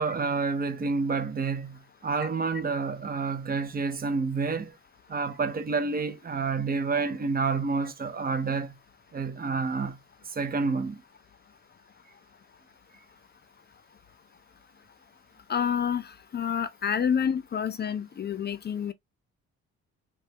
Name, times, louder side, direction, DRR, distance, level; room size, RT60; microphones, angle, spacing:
voice 1, 0.0-4.7 5.1-8.7 9.1-10.0 10.4-11.0, right 4 dB, 30° right, 0.5 m, -29 dB
voice 2, 15.5-18.9, left 7 dB, 35° left, 0.4 m, -28 dB
3.1 x 2.2 x 2.6 m
cardioid pair, 90°, 30 cm